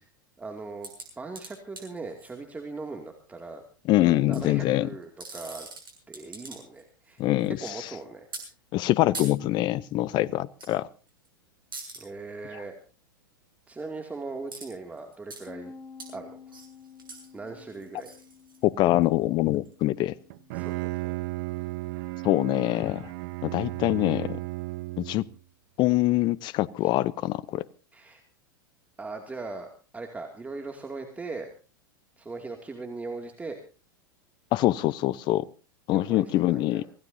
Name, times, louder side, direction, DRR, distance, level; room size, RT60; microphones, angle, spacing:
voice 1, 0.4-0.9 1.2-3.6 4.0-5.7 6.1-7.2 7.6-8.3 12.0-12.8 13.7-15.7 16.1-16.5 17.3-18.1 20.5-21.1 27.9-28.2 29.0-29.7 29.9-31.5 32.2-33.6 35.9-36.9, right 3 dB, 15° right, 2.5 m, -39 dB
sound 1, 0.8-2.3 4.1-4.4 5.0-6.8 7.1-7.7 8.3-8.4 9.1-9.3 10.6-10.7 11.1-11.3 11.7-12.0 14.5-14.7 15.0-15.4 16.0-16.1 16.5-19.0 19.6-19.7, right 3 dB, 80° right, 7.2 m, -42 dB
voice 2, 3.9-4.9 7.2-7.9 8.7-10.9 18.6-20.1 22.2-23.1 23.4-24.4 25.0-25.2 25.8-27.6 34.5-35.4 35.9-36.9, left 16 dB, 40° left, 0.7 m, -24 dB
Bass guitar, 15.5-21.7, left 5 dB, 25° left, 2.2 m, -51 dB
Bowed string instrument, 20.3-25.4, right 18 dB, 55° right, 0.8 m, -34 dB
25.0 x 17.0 x 2.7 m
hypercardioid pair, 90°, 11 cm